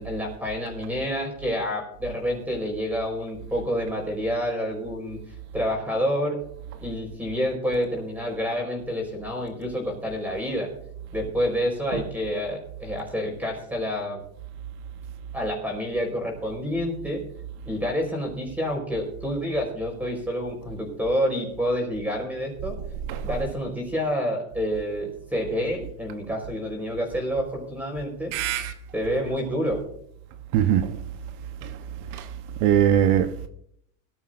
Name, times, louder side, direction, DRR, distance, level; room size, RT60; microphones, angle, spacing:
voice 1, 0.0-5.2 5.5-6.4 6.8-10.7 11.1-14.2 15.3-17.2 17.6-22.7 23.2-28.3 28.9-29.8, equal, 5° right, 4.7 m, -28 dB
voice 2, 28.3-28.7 30.5-31.0 31.6-31.7 32.1-32.3 32.6-33.5, right 10 dB, 60° right, 1.1 m, -22 dB
20.5 x 12.5 x 2.6 m
supercardioid pair, 115°, 46 cm